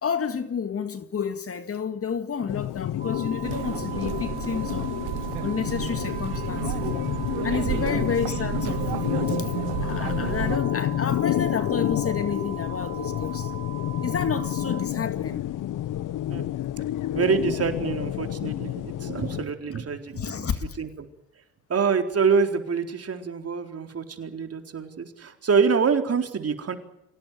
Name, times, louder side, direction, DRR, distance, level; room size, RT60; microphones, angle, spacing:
voice 1, 0.0-4.9 5.2-6.9 7.4-9.1 9.4-9.5 9.8-13.5 14.0-15.5 20.2-20.8, left 6 dB, 35° left, 2.0 m, -30 dB
sound 1, 2.5-19.4, left 13 dB, 55° left, 0.8 m, -29 dB
sound 2, 3.0-14.9, right 11 dB, 20° right, 4.5 m, -41 dB
sound 3, 3.4-10.6, right 19 dB, 75° right, 0.8 m, -32 dB
voice 2, 7.7-8.0 16.3-16.4 17.1-20.5 20.8-21.1 21.7-26.8, right 5 dB, 40° right, 4.1 m, -26 dB
26.5 x 17.5 x 9.4 m
supercardioid pair, 90°, 38 cm